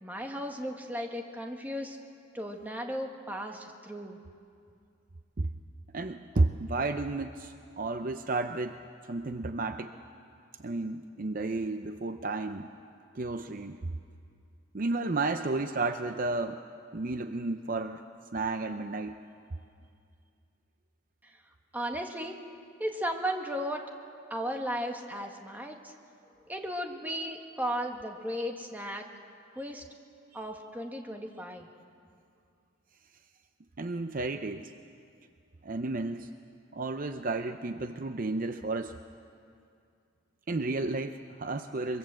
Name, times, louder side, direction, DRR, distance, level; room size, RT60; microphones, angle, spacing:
voice 1, 0.0-2.0 2.3-4.2 21.2-21.3 21.7-22.4 22.8-23.9 24.3-25.9 26.5-29.0 29.6-29.8 30.3-31.7, equal, 10° right, 2 dB, 1.7 m, -35 dB
voice 2, 5.9-8.8 9.0-9.9 10.6-12.7 13.1-13.8 14.7-16.6 16.9-18.0 18.3-19.2 30.4-30.5 33.8-34.7 35.6-36.3 36.7-39.0 40.5-42.0, right 3 dB, 45° right, 8 dB, 0.6 m, -32 dB
24.5 x 23.0 x 7.6 m, 2.4 s
head